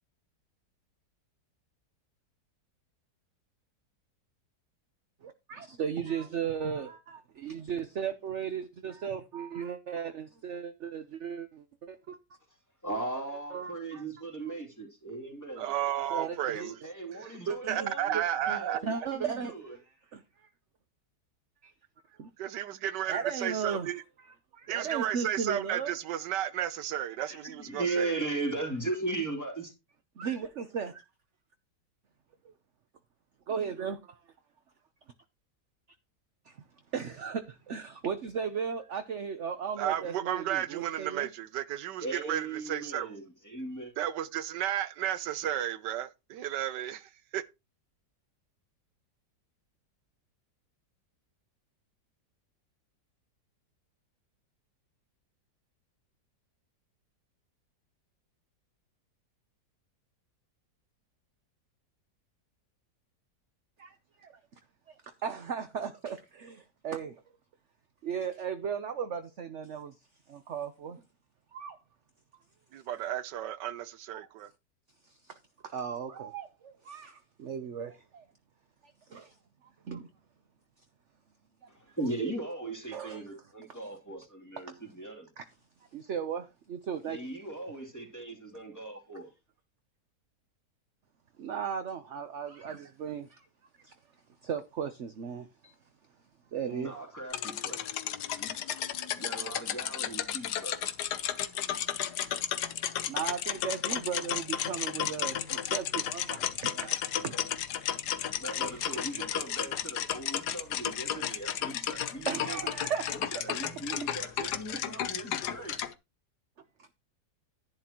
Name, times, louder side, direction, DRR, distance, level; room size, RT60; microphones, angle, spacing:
voice 1, 5.2-12.2 13.5-14.0 16.1-16.7 17.4-19.8 20.1-20.5 21.6-21.7 22.2-22.3 23.1-23.9 24.5-26.0 27.9-28.1 30.2-31.0 32.4-32.5 33.5-34.2 36.4-36.6 36.9-41.3 63.8-64.3 64.9-67.1 68.0-69.9 70.3-71.0 71.5-71.8 72.9-73.0 74.1-74.3 75.0-75.4 75.7-78.3 79.1-79.3 79.8-80.1 81.9-82.0 82.9-83.3 84.7-84.8 85.4-85.5 85.9-87.2 91.4-93.5 93.8-93.9 94.4-95.7 96.5-96.9 101.5-101.6 102.1-102.2 102.7-102.8 103.1-107.4 108.6-109.1 112.3-113.4 116.8-116.9, right 7 dB, 50° right, 1.0 m, -36 dB
voice 2, 12.8-15.7 16.5-18.2 18.5-19.8 27.2-29.7 42.0-43.9 81.7-85.3 87.0-89.3 96.7-97.8 98.4-98.6 99.1-100.8 108.3-112.6 113.3-115.8, right 2 dB, 10° left, 3.0 m, -38 dB
voice 3, 15.6-16.6 17.7-18.8 22.4-24.0 24.7-28.1 39.8-43.1 44.0-47.4 72.7-74.5, right 11 dB, 85° right, 1.3 m, -33 dB
sound 1, 97.3-115.9, left 10 dB, 70° left, 1.4 m, -33 dB
11.0 x 11.0 x 3.0 m
omnidirectional pair, 1.8 m